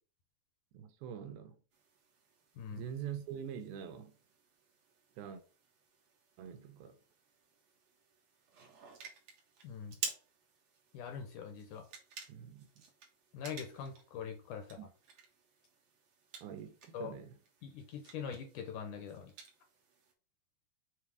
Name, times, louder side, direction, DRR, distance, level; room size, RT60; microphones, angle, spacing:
voice 1, 0.7-1.6 2.7-4.2 5.2-5.4 6.4-7.0 12.3-12.7 16.4-17.4, right 8 dB, 80° right, 2.7 m, -44 dB
sound 1, 1.7-20.1, right 5 dB, 55° right, 2.2 m, -51 dB
voice 2, 9.6-10.0 10.9-11.9 13.3-14.8 16.9-17.1 17.6-19.3, left 7 dB, 70° left, 2.1 m, -43 dB
7.5 x 3.3 x 4.8 m
omnidirectional pair, 4.3 m